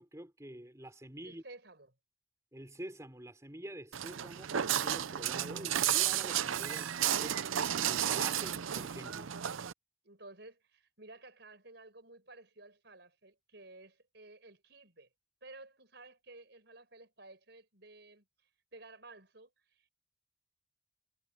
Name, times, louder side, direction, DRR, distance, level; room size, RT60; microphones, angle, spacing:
voice 1, 0.0-1.4 2.5-7.5 7.8-9.3, right 1 dB, 15° right, 3.7 m, -47 dB
voice 2, 1.2-1.9 9.3-9.4 10.0-15.1 15.4-18.2 18.7-19.9, right 2 dB, 55° right, 6.6 m, -54 dB
Walk footsteps, 3.9-9.7, right 10 dB, 85° right, 0.6 m, -33 dB
head